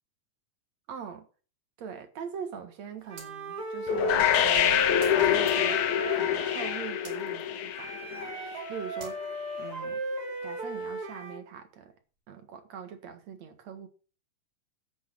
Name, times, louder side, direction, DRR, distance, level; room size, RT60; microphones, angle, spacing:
voice 1, 0.9-1.3 1.8-5.9 6.2-8.3 8.7-9.2 9.5-10.0 10.4-11.9 12.3-13.9, right 7 dB, 55° right, 2.5 m, -42 dB
Wind instrument woodwind instrument, 3.1-6.9 7.7-11.4, right 1 dB, 25° right, 3.2 m, -36 dB
sound 1, 3.2-3.3 5.0-5.9 7.1-7.5 9.0-9.3, right 6 dB, 70° right, 4.3 m, -48 dB
sound 2, 3.9-8.8, left 9 dB, 65° left, 2.3 m, -26 dB
10.5 x 8.3 x 6.4 m
omnidirectional pair, 4.2 m